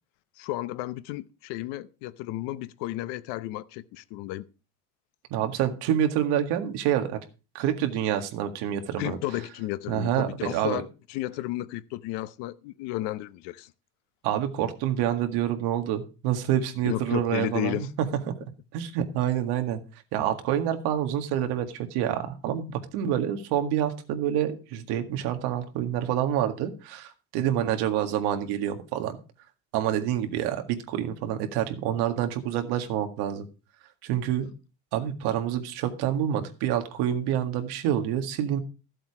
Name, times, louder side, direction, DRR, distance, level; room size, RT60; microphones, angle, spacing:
voice 1, 0.4-4.5 9.0-13.7 16.8-17.9, left 16 dB, 80° left, 0.8 m, -33 dB
voice 2, 5.3-7.2 7.5-9.2 9.9-10.8 14.2-17.9 18.3-18.4 18.7-19.8 20.1-29.2 29.7-33.5 34.0-34.5 34.9-38.6, right 10 dB, 70° right, 1.9 m, -27 dB
13.5 x 7.9 x 4.8 m
cardioid pair, 175°, 40 cm